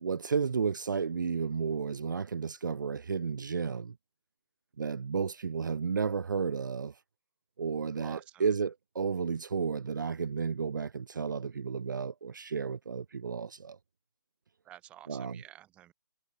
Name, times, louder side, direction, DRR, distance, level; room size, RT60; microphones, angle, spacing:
voice 1, 0.0-3.9 4.8-6.9 7.6-13.8 15.1-15.4, right 6 dB, 55° right, 0.7 m, -32 dB
voice 2, 8.0-8.6 14.6-15.9, right 13 dB, 10° right, 2.3 m, -51 dB
figure-of-eight pair, 165°, 13 cm